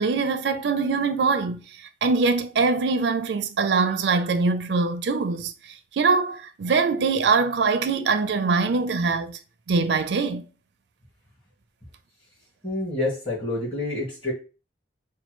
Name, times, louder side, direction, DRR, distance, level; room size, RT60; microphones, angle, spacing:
voice 1, 0.0-1.6 2.0-5.5 5.9-9.4 9.7-10.5, right 4 dB, 70° right, 0.4 m, -23 dB
voice 2, 12.6-14.3, left 2 dB, 30° left, 2.0 m, -28 dB
4.3 x 2.2 x 3.0 m
head